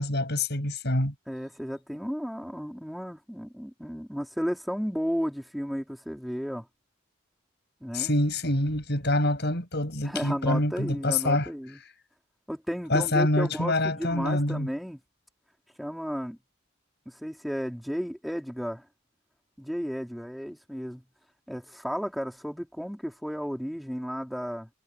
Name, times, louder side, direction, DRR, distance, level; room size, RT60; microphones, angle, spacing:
voice 1, 0.0-1.1 7.9-11.5 12.9-14.7, left 1 dB, 55° left, 7.6 m, -26 dB
voice 2, 1.3-6.7 7.8-8.1 10.0-11.8 12.5-15.0 15.8-16.4 17.1-18.9 19.6-21.0 21.5-24.7, equal, ahead, 4.5 m, -33 dB
head